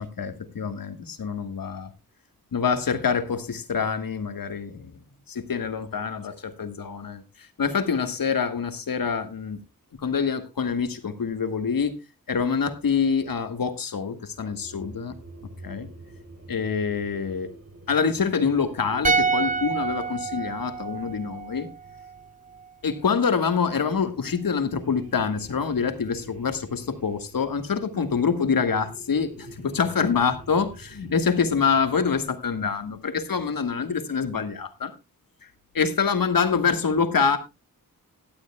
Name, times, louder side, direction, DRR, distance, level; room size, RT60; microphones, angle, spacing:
voice 1, 0.0-1.9 2.5-5.0 5.3-9.6 10.0-11.9 12.3-15.2 15.6-15.9 16.5-17.5 17.9-21.7 22.8-34.9 35.4-35.5 35.7-37.4, left 6 dB, 75° left, 9 dB, 1.5 m, -26 dB
sound 1, 14.3-23.4 24.1-32.9, right 2 dB, 45° right, 4.1 m, -48 dB
sound 2, 19.0-22.3 22.5-22.7, right 5 dB, 25° right, 0.5 m, -27 dB
16.0 x 12.0 x 2.2 m, 0.25 s
wide cardioid pair, 75°, 35 cm